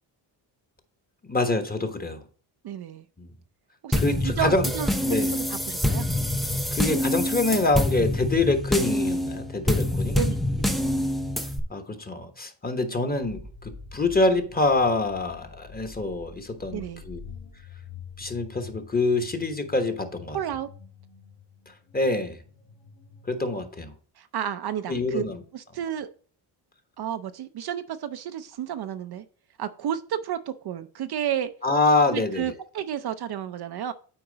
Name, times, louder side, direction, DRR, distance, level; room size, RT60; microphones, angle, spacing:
voice 1, 1.3-2.2 3.2-3.3 4.0-4.6 5.1-5.3 6.7-10.2 11.7-17.2 18.2-20.4 21.9-22.4 23.3-23.9 24.9-25.4 31.6-32.5, left 2 dB, 20° left, 1.1 m, -25 dB
voice 2, 2.6-3.0 3.8-4.9 5.2-6.0 10.1-10.8 16.7-17.0 20.3-20.7 24.2-25.3 25.5-26.1 27.0-29.2 29.6-31.5 32.1-33.9, right 9 dB, 55° right, 0.6 m, -31 dB
sound 1, 3.9-11.6, left 1 dB, ahead, 0.5 m, -26 dB
sound 2, 12.9-23.9, left 5 dB, 85° left, 2.4 m, -46 dB
8.8 x 4.4 x 3.9 m
cardioid pair, 115°, 48 cm